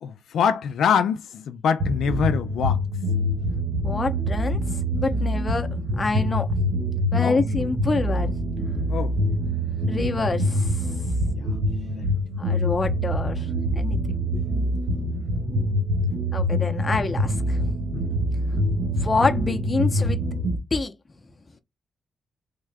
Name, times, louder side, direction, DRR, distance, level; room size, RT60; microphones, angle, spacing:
voice 1, 0.0-2.8 7.2-7.4 8.9-9.1 11.3-11.4 12.0-12.1 15.2-15.3 17.9-18.1, left 7 dB, 85° left, 0.4 m, -24 dB
sound 1, 1.8-20.6, equal, 65° right, 1.1 m, -25 dB
voice 2, 3.8-6.5 7.1-8.4 9.9-11.1 12.4-14.0 14.3-14.4 16.3-17.6 19.0-20.2 20.7-20.9, left 3 dB, 30° left, 0.6 m, -27 dB
3.6 x 2.3 x 3.3 m
cardioid pair, 110°, 0 cm